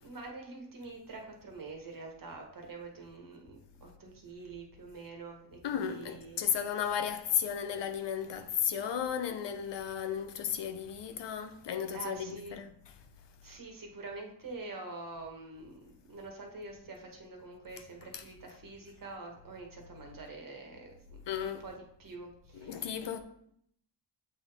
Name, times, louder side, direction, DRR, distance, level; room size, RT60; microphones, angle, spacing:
voice 1, 0.0-6.4 11.9-12.6 13.4-21.7 22.0-22.9, right 3 dB, 50° right, 1.4 m, -46 dB
voice 2, 5.6-12.7 18.1-18.2 21.3-21.7 22.6-23.2, left 8 dB, 75° left, 0.7 m, -34 dB
7.7 x 3.5 x 3.5 m
cardioid pair, 90°, 43 cm